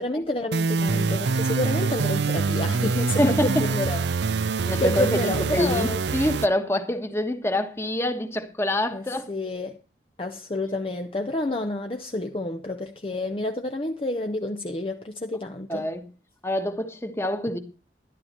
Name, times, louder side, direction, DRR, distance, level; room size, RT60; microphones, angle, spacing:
voice 1, 0.0-4.0 4.4-6.0 8.9-9.8 10.2-15.9, left 2 dB, 30° left, 0.7 m, -29 dB
sound 1, 0.5-6.5, right 4 dB, 80° right, 0.5 m, -25 dB
voice 2, 3.1-3.7 4.6-9.3 15.7-16.0 16.4-17.6, left 1 dB, 15° left, 1.3 m, -26 dB
12.0 x 11.5 x 4.4 m
head